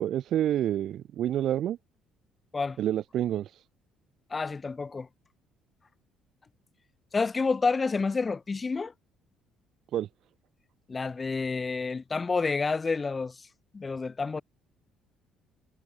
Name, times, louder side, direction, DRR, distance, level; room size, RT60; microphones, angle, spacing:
voice 1, 0.0-1.8 2.8-3.6 9.9-10.1, right 11 dB, 55° right, 3.2 m, -28 dB
voice 2, 4.3-5.1 7.1-8.9 10.9-13.3 13.7-14.4, left 4 dB, 20° left, 2.8 m, -29 dB
cardioid pair, 140°, 0 cm